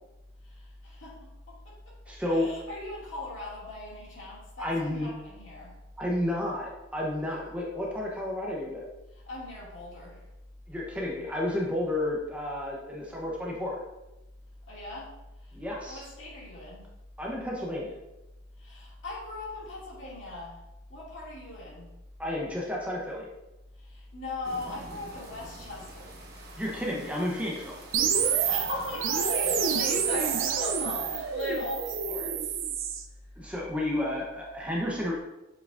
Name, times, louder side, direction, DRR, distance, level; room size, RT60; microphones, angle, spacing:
voice 1, 0.4-2.0 2.3-5.8 9.1-10.2 14.7-15.2 15.4-15.6 15.9-16.9 18.6-20.6 20.9-21.9 23.8-26.3 28.3-32.6, left 2 dB, 65° left, -5 dB, 2.3 m, -39 dB
voice 2, 2.1-2.5 4.6-5.1 6.0-8.9 10.7-13.8 15.5-16.1 17.2-18.0 22.2-23.3 26.6-27.7 33.4-35.2, left 1 dB, 5° right, -3 dB, 0.8 m, -31 dB
sound 1, 24.4-31.8, right 2 dB, 50° right, 1.1 m, -48 dB
sound 2, 27.9-33.0, right 6 dB, 70° right, 0.6 m, -28 dB
7.5 x 5.7 x 2.5 m, 0.98 s
head